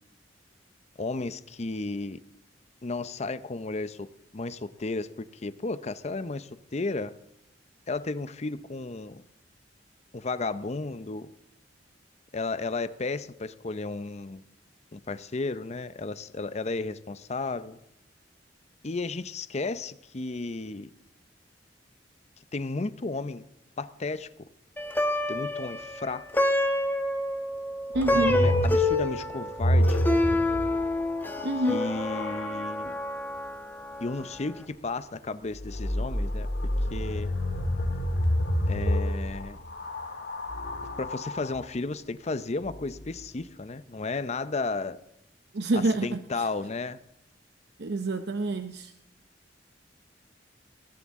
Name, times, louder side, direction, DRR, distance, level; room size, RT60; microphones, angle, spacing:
voice 1, 1.0-2.2 2.8-4.1 4.3-7.1 7.9-9.2 10.1-11.3 12.3-14.4 14.9-17.8 18.8-20.9 22.5-23.4 23.8-24.3 25.3-26.3 28.0-30.0 31.7-33.0 34.0-37.3 38.7-39.6 41.0-45.0 45.7-47.0, left 3 dB, 35° left, 14 dB, 0.6 m, -33 dB
Plucked string instrument, 24.8-34.2, left 1 dB, 10° left, 1.3 m, -28 dB
sound 1, 27.9-32.6 35.5-41.7 42.6-43.2, left 1 dB, 70° left, 2.0 m, -29 dB
voice 2, 27.9-28.4 31.4-31.8 45.5-46.5 47.8-48.9, right 2 dB, 65° right, 8 dB, 0.7 m, -27 dB
20.5 x 17.0 x 3.7 m, 0.80 s
head